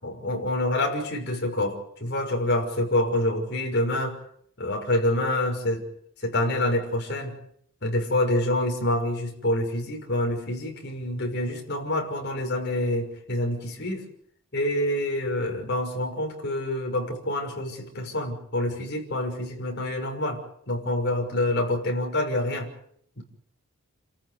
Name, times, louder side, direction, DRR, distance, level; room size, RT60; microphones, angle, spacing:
voice 1, 0.0-4.2 4.6-5.8 6.2-7.4 7.8-14.0 14.5-20.4 20.7-22.7 23.2-23.3, left 1 dB, 50° left, 2 dB, 6.2 m, -27 dB
29.5 x 14.5 x 9.8 m, 0.68 s
head